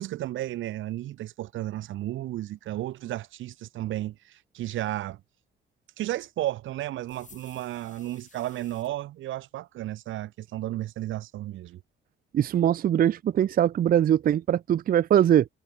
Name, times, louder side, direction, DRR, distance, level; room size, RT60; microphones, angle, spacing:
voice 1, 0.0-5.2 6.0-11.8, right 14 dB, 75° right, 0.8 m, -33 dB
sound 1, 7.1-8.9, left 5 dB, 40° left, 5.8 m, -55 dB
voice 2, 12.3-15.5, right 10 dB, 45° right, 0.5 m, -22 dB
cardioid pair, 90°, 20 cm